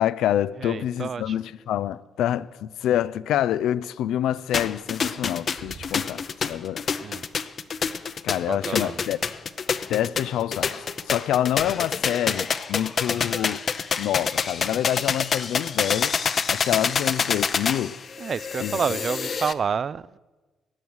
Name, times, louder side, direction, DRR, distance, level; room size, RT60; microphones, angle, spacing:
voice 1, 0.0-6.8 8.2-9.2 9.9-13.6 14.0-16.1 16.5-18.0 18.6-18.8, left 11 dB, 80° left, 0.4 m, -26 dB
voice 2, 0.6-1.3 7.0-7.3 8.5-9.0 18.2-20.2, right 6 dB, 45° right, 0.4 m, -29 dB
sound 1, 4.5-19.5, left 6 dB, 50° left, 0.7 m, -27 dB
16.5 x 10.5 x 6.2 m
cardioid pair, 90°, 0 cm